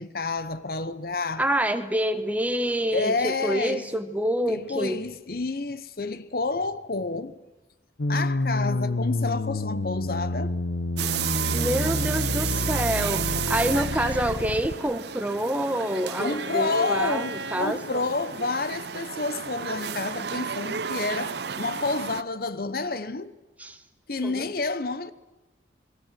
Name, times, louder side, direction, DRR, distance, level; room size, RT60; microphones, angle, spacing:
voice 1, 0.0-1.4 2.9-3.9 4.5-7.4 8.1-10.6 16.2-23.3 24.1-25.1, left 3 dB, 50° left, 1.0 m, -29 dB
voice 2, 1.4-3.1 3.4-5.0 11.5-18.0 23.6-23.8 24.2-24.5, right 1 dB, 10° right, 1.2 m, -27 dB
sound 1, 8.0-14.7, left 2 dB, 85° left, 1.1 m, -28 dB
sound 2, 11.0-22.2, right 7 dB, 65° right, 0.7 m, -32 dB
Bowed string instrument, 14.6-17.8, right 1 dB, 80° right, 2.1 m, -39 dB
28.0 x 21.0 x 7.6 m
head